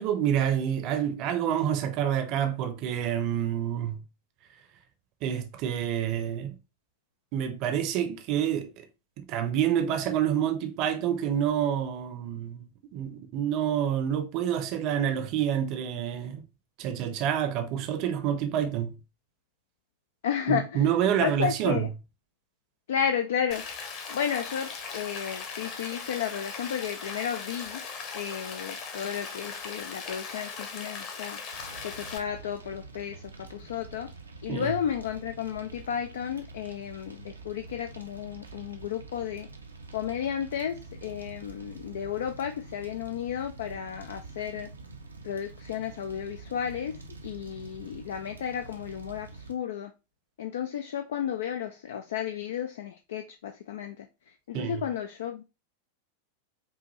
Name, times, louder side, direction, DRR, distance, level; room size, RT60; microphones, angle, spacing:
voice 1, 0.0-4.0 5.2-6.5 7.3-8.9 9.2-16.4 16.8-19.0 20.5-21.9 34.5-34.8 54.5-54.8, right 9 dB, 40° right, 0.7 m, -28 dB
voice 2, 20.2-20.8 21.2-21.9 22.9-23.6 24.1-27.8 28.1-31.4 31.8-34.1 34.4-39.5 39.9-44.7 45.2-47.0 47.2-49.9 50.4-54.1 54.5-55.4, left 8 dB, 60° left, 0.4 m, -33 dB
Rain, 23.5-32.2, left 5 dB, 40° left, 1.1 m, -39 dB
Fire, 31.5-49.5, right 3 dB, 75° right, 0.6 m, -46 dB
5.4 x 2.5 x 3.0 m
figure-of-eight pair, 90°, 0 cm